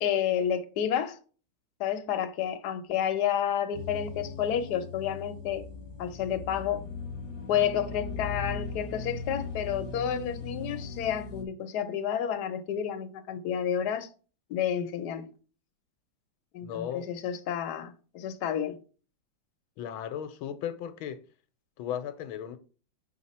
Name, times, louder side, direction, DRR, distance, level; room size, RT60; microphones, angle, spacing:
voice 1, 0.0-1.2 1.8-5.6 6.0-6.8 7.5-14.1 14.5-15.3 16.5-18.8, left 9 dB, 60° left, 1.2 m, -30 dB
sound 1, 3.7-11.4, left 4 dB, 35° left, 1.1 m, -39 dB
voice 2, 16.6-17.1 19.8-21.2 21.8-22.6, left 9 dB, 85° left, 1.4 m, -36 dB
5.8 x 4.7 x 4.2 m
omnidirectional pair, 2.2 m